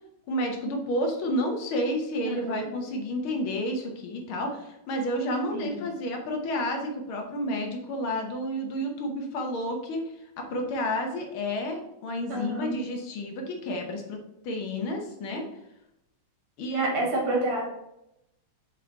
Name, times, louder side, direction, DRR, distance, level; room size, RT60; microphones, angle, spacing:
voice 1, 0.3-10.0 10.4-14.2 14.4-15.4 16.6-16.9, equal, 70° left, 3 dB, 1.9 m, -30 dB
voice 2, 2.2-2.7 5.5-5.8 12.3-12.8 16.7-17.6, right 2 dB, 80° right, -1 dB, 2.9 m, -29 dB
6.9 x 3.9 x 4.1 m, 0.84 s
omnidirectional pair, 2.4 m